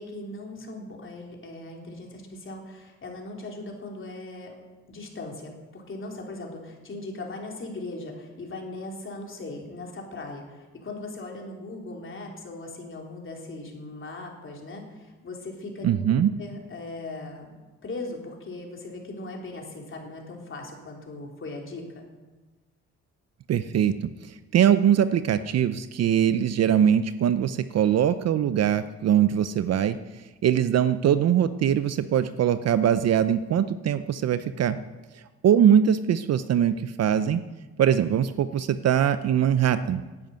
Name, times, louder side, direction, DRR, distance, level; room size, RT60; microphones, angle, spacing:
voice 1, 0.0-4.5 4.9-15.9 16.4-17.5 17.8-22.1, left 2 dB, 40° left, 0 dB, 3.5 m, -39 dB
voice 2, 15.8-16.3 23.5-30.0 30.4-34.8 35.4-37.4 37.8-40.0, right 9 dB, 55° right, 12 dB, 0.6 m, -22 dB
11.0 x 9.4 x 9.1 m, 1.2 s
cardioid pair, 90°, 30 cm